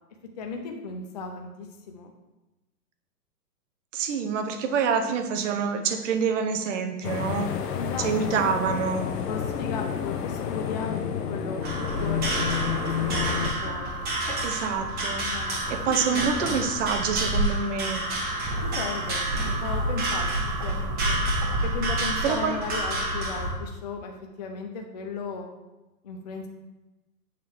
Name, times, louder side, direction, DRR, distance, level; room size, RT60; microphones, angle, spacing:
voice 1, 0.4-2.1 7.7-8.5 9.3-12.5 12.8-14.0 15.3-15.8 16.0-16.3 18.6-20.2 20.6-21.2 21.6-25.5 26.0-26.5, left 4 dB, 30° left, 2 dB, 0.4 m, -36 dB
voice 2, 3.9-7.5 8.0-9.1 14.4-15.3 15.7-18.0 22.2-22.6, right 6 dB, 50° right, 7 dB, 0.8 m, -27 dB
sound 1, 7.0-13.5, left 8 dB, 75° left, 0.9 m, -30 dB
sound 2, 10.5-17.5, left 1 dB, ahead, 1.1 m, -43 dB
sound 3, 11.6-23.5, right 1 dB, 20° right, 1.2 m, -28 dB
7.4 x 3.8 x 4.6 m, 1.0 s
hypercardioid pair, 150°, 47 cm